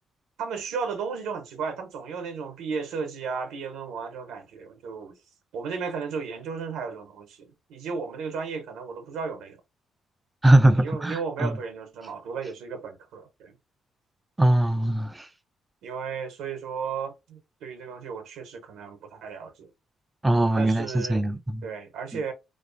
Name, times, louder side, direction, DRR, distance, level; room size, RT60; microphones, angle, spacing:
voice 1, 0.4-5.2 5.5-9.6 10.7-13.5 15.8-19.7 20.6-21.3 21.6-22.3, right 5 dB, 75° right, 0.7 m, -34 dB
voice 2, 10.4-11.6 14.4-15.3 20.2-21.6, right 1 dB, 20° right, 0.3 m, -21 dB
2.5 x 2.4 x 2.5 m
hypercardioid pair, 50°, 0 cm